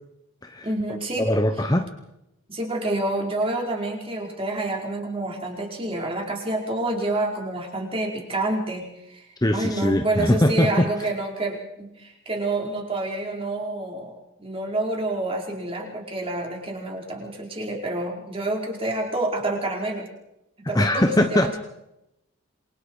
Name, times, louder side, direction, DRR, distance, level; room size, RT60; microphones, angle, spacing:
voice 1, 0.6-1.3 2.5-9.3 9.5-14.1 14.4-20.1 20.7-21.6, right 2 dB, 25° right, 0 dB, 5.1 m, -28 dB
voice 2, 1.2-1.9 9.4-10.9 20.7-21.6, left 1 dB, 15° left, 7 dB, 1.0 m, -21 dB
28.0 x 23.5 x 4.9 m, 0.86 s
head